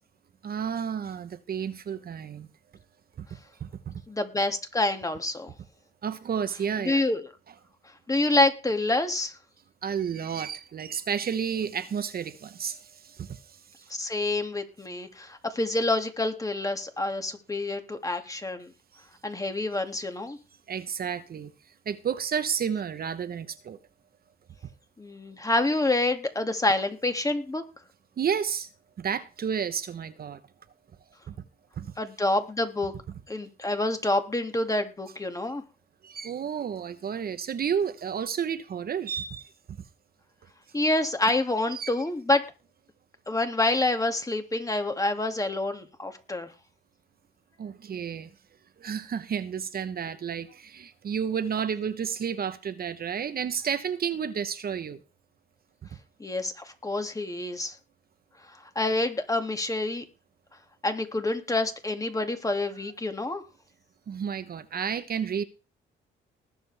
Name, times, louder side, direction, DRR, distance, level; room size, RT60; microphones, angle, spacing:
voice 1, 0.4-2.5 3.2-3.3 3.6-4.0 6.0-7.0 9.8-13.9 18.9-19.0 20.7-21.5 21.8-23.8 28.2-28.7 29.0-30.4 31.3-31.4 31.8-31.9 36.0-39.8 41.7-41.9 47.6-48.3 48.8-55.0 64.1-65.4, right 7 dB, 50° right, 1.0 m, -31 dB
voice 2, 4.1-5.5 6.8-7.2 8.1-9.4 13.9-18.7 19.2-20.4 25.0-27.6 32.0-32.9 33.3-35.6 40.7-42.4 43.3-46.5 56.2-57.8 58.8-60.0 60.8-63.4, left 2 dB, 15° left, 2.3 m, -27 dB
20.0 x 7.7 x 3.4 m
cardioid pair, 90°, 20 cm